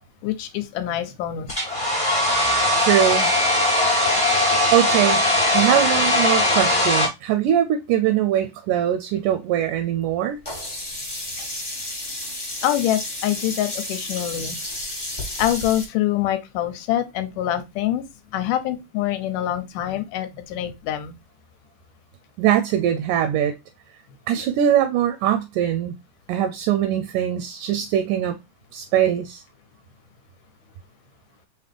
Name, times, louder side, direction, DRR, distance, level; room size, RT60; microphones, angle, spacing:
voice 1, 0.2-1.6 12.6-14.6 15.4-18.0 18.3-21.2 24.3-24.5, left 12 dB, 80° left, 2.1 m, -25 dB
Domestic sounds home sounds, 1.5-7.1, left 1 dB, 5° left, 0.9 m, -20 dB
voice 2, 2.8-3.3 4.7-5.2 5.5-10.4 22.4-23.6 24.3-26.0 26.3-28.4 28.7-29.4, right 10 dB, 80° right, 1.9 m, -21 dB
Sink (filling or washing), 10.5-15.9, left 1 dB, 25° left, 0.5 m, -32 dB
5.7 x 2.8 x 3.3 m
omnidirectional pair, 3.9 m